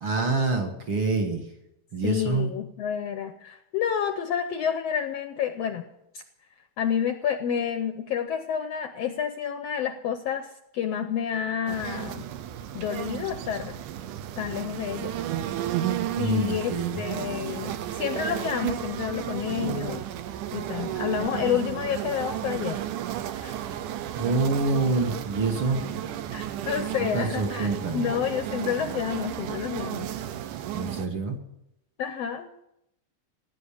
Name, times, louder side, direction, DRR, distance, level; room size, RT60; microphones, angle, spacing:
voice 1, 0.0-1.5 1.9-2.5 16.1-17.0 24.2-25.8 27.0-28.1 30.7-31.4, right 3 dB, 50° right, 2 dB, 2.0 m, -26 dB
voice 2, 2.0-5.8 6.1-6.2 6.8-12.2 12.7-13.8 14.4-15.1 16.2-20.0 20.5-22.8 23.4-23.6 26.3-30.1 32.0-32.5, left 8 dB, 75° left, 8 dB, 1.5 m, -29 dB
sound 1, 11.7-31.1, right 11 dB, 85° right, 2.4 m, -33 dB
16.5 x 9.9 x 7.1 m, 0.82 s
omnidirectional pair, 3.6 m